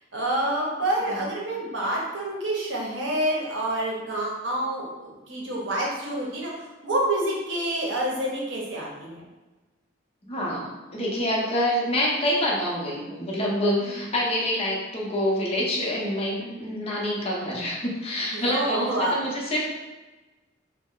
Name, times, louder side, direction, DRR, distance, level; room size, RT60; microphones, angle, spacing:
voice 1, 0.1-6.5 6.8-9.2 16.4-16.7 18.3-19.2, right 1 dB, 75° right, -3 dB, 0.8 m, -28 dB
voice 2, 10.2-19.7, left 1 dB, 35° left, -3 dB, 0.6 m, -27 dB
3.0 x 2.1 x 3.6 m, 1.2 s
head